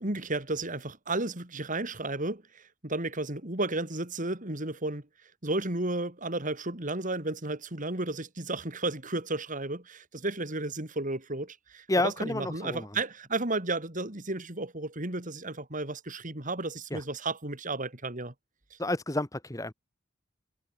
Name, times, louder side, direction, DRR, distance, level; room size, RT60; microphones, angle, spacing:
voice 1, 0.0-5.0 5.4-18.3 18.7-18.8, right 2 dB, 40° right, 3.2 m, -33 dB
voice 2, 11.9-12.9 16.9-17.0 18.8-19.7, left 2 dB, 15° left, 1.4 m, -30 dB
head